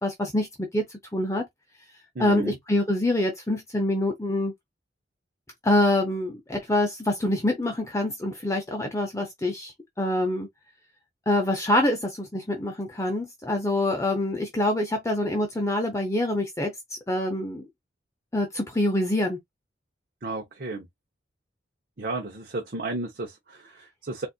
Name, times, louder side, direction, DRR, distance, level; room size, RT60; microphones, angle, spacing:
voice 1, 0.0-0.5 0.7-0.9 1.1-1.4 2.2-4.5 5.6-10.5 11.3-17.7 18.3-19.4, left 1 dB, 15° left, 0.7 m, -25 dB
voice 2, 2.1-2.6 20.2-20.9 22.0-24.3, right 2 dB, 50° right, 0.8 m, -33 dB
4.1 x 2.5 x 2.4 m
head